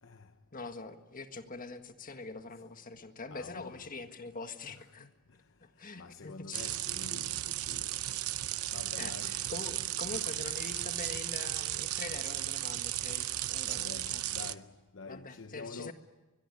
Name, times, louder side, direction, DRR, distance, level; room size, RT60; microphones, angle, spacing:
voice 1, 0.5-5.1 5.6-6.7 9.0-14.2 15.1-15.9, left 3 dB, 40° left, 1.7 m, -44 dB
voice 2, 3.3-3.9 4.7-5.1 6.0-8.0 8.7-9.4 13.6-15.9, left 4 dB, 60° left, 0.9 m, -47 dB
sound 1, 6.5-14.5, right 14 dB, 85° right, 0.8 m, -35 dB
23.0 x 22.0 x 10.0 m
head